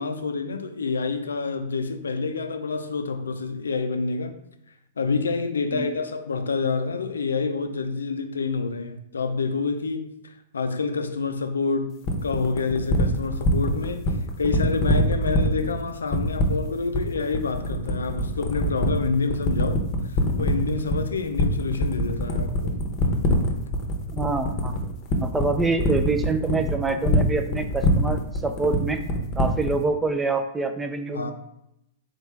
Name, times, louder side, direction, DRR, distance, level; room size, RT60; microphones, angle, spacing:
voice 1, 0.0-4.4 5.0-19.9 20.4-22.7 31.1-31.3, left 4 dB, 80° left, 0.4 m, -28 dB
sound 1, 12.0-29.8, left 1 dB, 35° left, 0.8 m, -23 dB
voice 2, 24.1-24.7 25.2-29.0 29.4-31.3, right 3 dB, 10° right, 0.4 m, -26 dB
4.0 x 3.2 x 3.2 m
hypercardioid pair, 105°, 0 cm